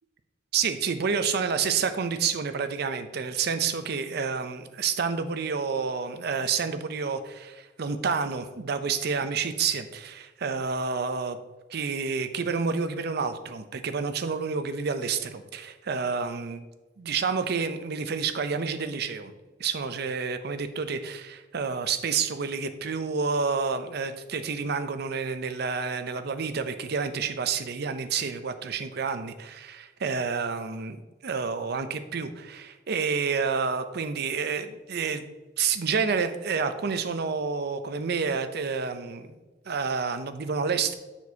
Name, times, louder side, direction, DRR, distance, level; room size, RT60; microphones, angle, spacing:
voice 1, 0.5-11.4 11.7-16.6 17.0-19.3 19.6-31.0 31.2-35.3 35.6-39.4 39.7-40.9, right 5 dB, 60° right, 10 dB, 0.5 m, -29 dB
7.1 x 6.1 x 2.8 m, 1.2 s
head